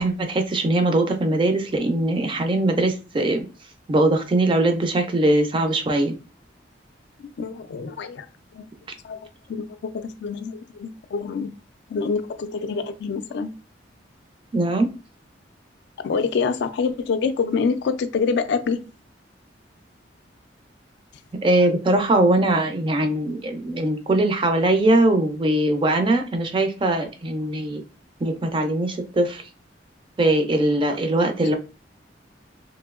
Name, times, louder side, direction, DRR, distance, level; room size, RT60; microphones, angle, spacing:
voice 1, 0.0-3.4 3.9-6.1 14.5-14.9 21.4-27.8 28.2-29.4 30.2-31.6, right 2 dB, 30° right, 0.4 m, -21 dB
voice 2, 7.2-8.3 8.5-8.6 9.0-9.2 9.5-9.6 9.9-11.5 11.9-13.5 16.0-18.8, left 5 dB, 65° left, 0.3 m, -26 dB
2.9 x 2.6 x 2.4 m
head